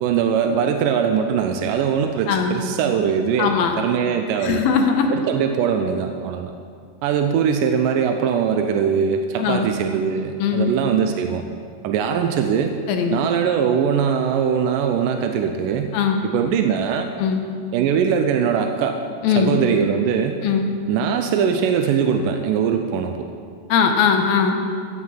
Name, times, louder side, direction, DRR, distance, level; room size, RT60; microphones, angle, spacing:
voice 1, 0.0-4.6 5.1-6.5 7.0-11.4 11.8-12.7 13.1-15.9 16.2-17.1 17.7-19.0 19.4-20.4 20.9-23.3, right 7 dB, 80° right, 5 dB, 2.1 m, -21 dB
voice 2, 2.3-2.6 3.4-3.8 4.4-5.1 9.4-9.7 10.4-10.7 12.9-13.2 15.9-16.2 17.2-17.4 19.2-19.5 20.4-20.7 23.7-24.6, left 6 dB, 85° left, 3 dB, 2.8 m, -20 dB
13.5 x 6.0 x 7.6 m, 2.2 s
omnidirectional pair, 4.1 m